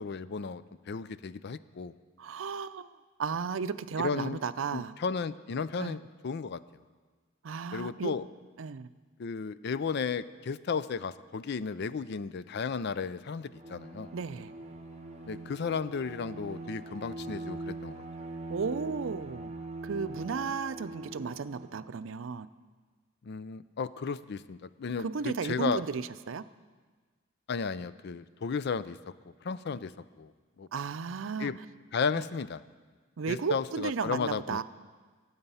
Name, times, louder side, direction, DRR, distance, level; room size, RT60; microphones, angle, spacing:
voice 1, 0.0-1.9 4.0-4.4 4.7-6.6 7.7-8.2 9.2-14.1 15.3-18.0 23.2-25.8 27.5-29.0 29.4-29.9 30.2-30.3 30.6-30.7 31.4-31.6 31.9-32.6 33.3-34.6, left 5 dB, 55° left, 15 dB, 0.4 m, -34 dB
voice 2, 2.2-2.9 3.2-4.9 5.8-6.0 7.4-8.1 8.6-8.9 14.1-14.5 18.5-19.5 19.8-22.5 25.0-26.4 30.7-31.5 32.1-32.2 33.2-34.6, right 5 dB, 75° right, 14 dB, 0.5 m, -34 dB
Bowed string instrument, 13.5-22.0, right 2 dB, 35° right, 1.1 m, -42 dB
22.5 x 8.1 x 5.6 m, 1.4 s
head